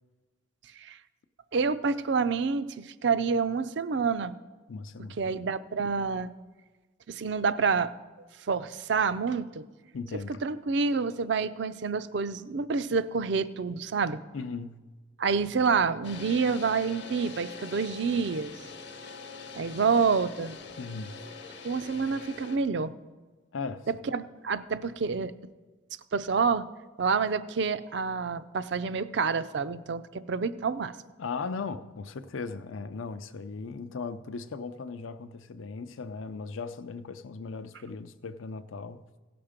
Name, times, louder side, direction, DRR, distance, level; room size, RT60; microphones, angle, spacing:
voice 1, 1.5-4.4 5.2-6.3 7.1-7.9 8.5-9.6 10.4-14.2 15.2-18.5 19.5-20.6 21.6-22.9 24.1-25.3 26.1-26.7 27.0-30.9, right 5 dB, 60° right, 0.4 m, -28 dB
voice 2, 4.7-5.3 9.9-10.4 14.3-14.8 20.8-21.2 23.5-23.9 31.2-39.0, left 4 dB, 85° left, 0.5 m, -37 dB
sound 1, 16.0-22.6, left 5 dB, 60° left, 0.9 m, -43 dB
16.5 x 6.0 x 5.1 m
head